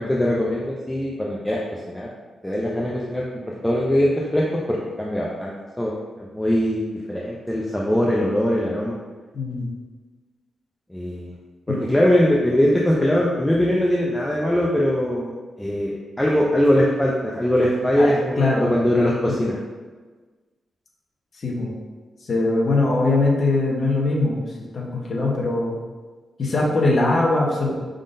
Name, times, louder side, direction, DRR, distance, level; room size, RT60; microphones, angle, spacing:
voice 1, 0.0-2.1 2.4-6.8 7.1-9.0 10.9-11.3 11.7-19.6, left 1 dB, 10° left, -4 dB, 0.5 m, -21 dB
voice 2, 9.3-9.7 11.7-11.9 18.0-18.7 21.4-21.7 22.2-25.8 26.4-27.7, left 2 dB, 50° left, -3 dB, 1.0 m, -21 dB
5.1 x 3.8 x 2.6 m, 1.4 s
cardioid pair, 105°, 0 cm